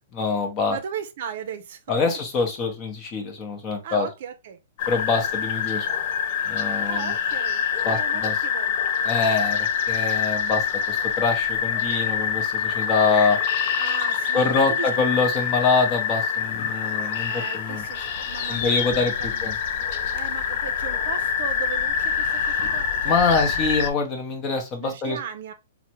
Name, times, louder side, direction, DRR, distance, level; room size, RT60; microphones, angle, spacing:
voice 1, 0.1-0.8 1.9-4.1 4.9-5.9 6.4-7.1 7.8-8.4 9.0-13.4 14.3-17.8 18.5-19.6 23.0-25.2, left 4 dB, 25° left, 0.8 m, -25 dB
voice 2, 0.7-2.0 3.8-4.6 5.1-5.3 6.9-8.7 13.8-15.1 17.3-19.5 20.1-23.1 24.8-25.5, right 7 dB, 60° right, 0.5 m, -37 dB
sound 1, 4.8-23.9, left 7 dB, 50° left, 0.3 m, -25 dB
3.2 x 2.1 x 2.8 m
hypercardioid pair, 150°, 0 cm